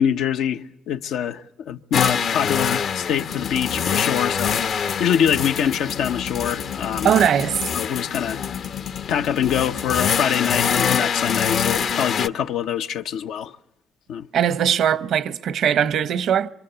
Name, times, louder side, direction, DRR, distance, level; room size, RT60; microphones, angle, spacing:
voice 1, 0.0-7.1 7.7-8.4 9.1-13.6 14.1-14.3, left 9 dB, 85° left, 0.9 m, -24 dB
sound 1, 1.9-12.3, left 7 dB, 65° left, 1.0 m, -25 dB
voice 2, 7.0-7.7 14.3-16.5, right 9 dB, 70° right, 1.0 m, -20 dB
26.0 x 25.0 x 6.9 m
cardioid pair, 90°, 0 cm